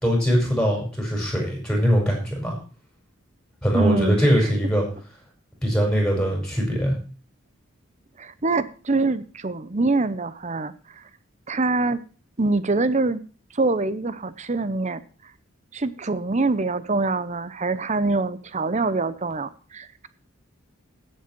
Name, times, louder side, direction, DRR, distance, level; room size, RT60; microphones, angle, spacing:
voice 1, 0.0-2.5 3.6-4.8 5.6-7.0, equal, 5° left, 1 dB, 5.4 m, -22 dB
voice 2, 3.7-4.2 8.2-11.0 11.5-12.0 12.4-13.2 13.5-15.0 15.7-20.1, right 3 dB, 35° right, 14 dB, 0.8 m, -24 dB
16.5 x 7.6 x 4.6 m, 0.38 s
head